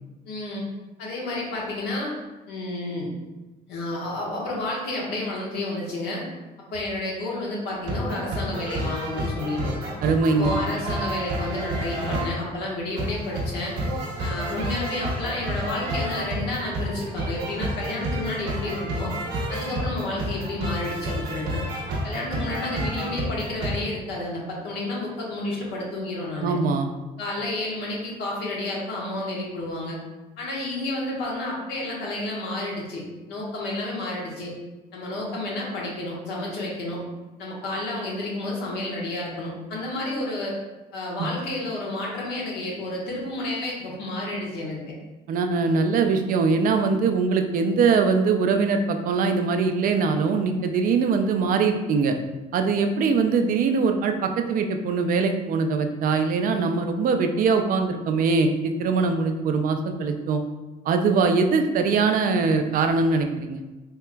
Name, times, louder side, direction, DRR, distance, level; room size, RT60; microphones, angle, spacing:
voice 1, 0.2-0.6 1.0-2.2 2.5-3.1 3.7-6.2 6.7-9.7 10.3-13.7 14.2-19.1 19.5-21.6 22.0-26.5 27.2-30.0 30.4-34.5 34.9-37.0 37.4-40.6 40.9-44.8, left 2 dB, 85° left, -4 dB, 1.2 m, -30 dB
sound 1, 7.8-12.4 12.9-23.8, right 1 dB, 85° right, 0.9 m, -30 dB
voice 2, 10.0-10.5 26.4-26.9 41.2-41.3 45.3-52.1 52.5-60.4 60.9-63.6, right 4 dB, 55° right, 6 dB, 0.4 m, -22 dB
4.4 x 2.8 x 2.3 m, 1.1 s
cardioid pair, 110°, 17 cm